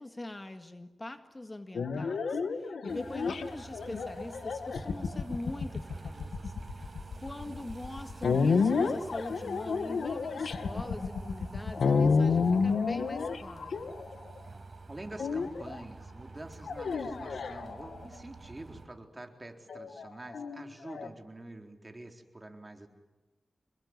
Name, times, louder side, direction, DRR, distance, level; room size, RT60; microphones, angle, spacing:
voice 1, 0.0-13.9, left 2 dB, 25° left, 8 dB, 1.9 m, -43 dB
sound 1, 1.7-14.4 15.2-15.8 16.6-18.1 19.7-21.1, left 5 dB, 90° left, 1.9 m, -30 dB
sound 2, 2.9-18.9, right 3 dB, 50° right, 5.1 m, -48 dB
voice 2, 14.9-22.9, right 1 dB, 25° right, 4 dB, 4.0 m, -46 dB
27.5 x 22.0 x 9.8 m, 1.1 s
cardioid pair, 65°, 0 cm